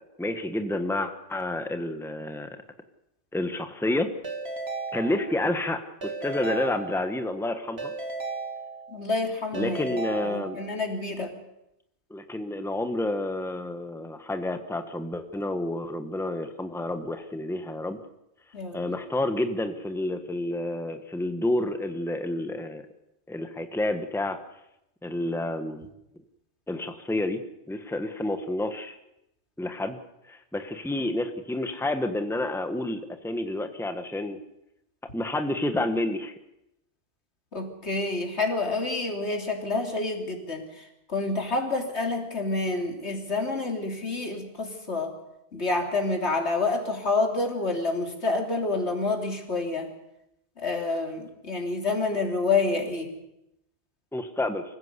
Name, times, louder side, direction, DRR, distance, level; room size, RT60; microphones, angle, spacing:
voice 1, 0.2-2.5 3.3-4.1 4.9-7.9 9.5-10.6 12.1-18.0 18.7-22.9 23.3-24.4 25.0-25.9 26.7-27.4 27.7-29.0 29.6-30.0 30.3-34.4 35.1-36.3 54.1-54.6, left 1 dB, ahead, 7 dB, 1.3 m, -29 dB
Keyboard (musical) / Ringtone, 4.2-5.6 6.0-7.3 7.8-9.1 9.5-10.9, right 3 dB, 65° right, 2.6 m, -35 dB
voice 2, 8.9-11.3 18.5-18.8 37.5-45.1 45.5-49.9 50.6-53.2, left 3 dB, 75° left, 2 dB, 3.6 m, -28 dB
25.0 x 15.5 x 8.2 m, 0.84 s
omnidirectional pair, 1.1 m